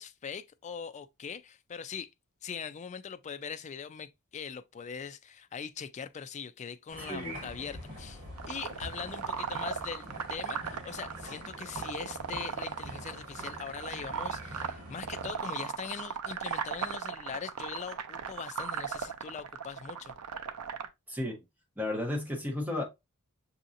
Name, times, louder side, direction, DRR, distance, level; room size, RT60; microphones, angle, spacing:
voice 1, 0.0-2.1 2.4-20.1, left 6 dB, 30° left, 0.3 m, -41 dB
sound 1, 6.9-15.4, equal, 40° right, 2.4 m, -45 dB
voice 2, 7.1-7.4 21.1-21.4 21.8-22.8, left 1 dB, 10° right, 1.2 m, -33 dB
sound 2, 8.4-20.9, right 7 dB, 85° right, 0.5 m, -37 dB
6.3 x 2.8 x 2.5 m
head